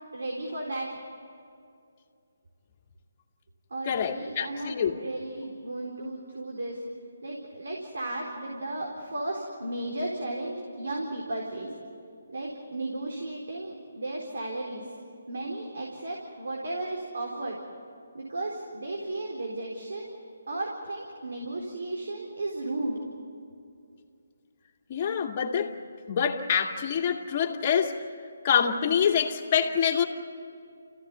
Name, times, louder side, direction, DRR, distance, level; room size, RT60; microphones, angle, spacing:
voice 1, 0.1-0.9 3.7-6.8 7.2-11.7 12.3-14.8 15.3-17.6 18.1-20.2 20.5-23.0, right 2 dB, 70° right, 4.2 m, -34 dB
voice 2, 3.9-5.0 24.9-25.7 26.1-28.0 28.4-30.0, left 7 dB, 35° left, 2.3 m, -26 dB
29.5 x 16.0 x 9.6 m
figure-of-eight pair, 150°, 0 cm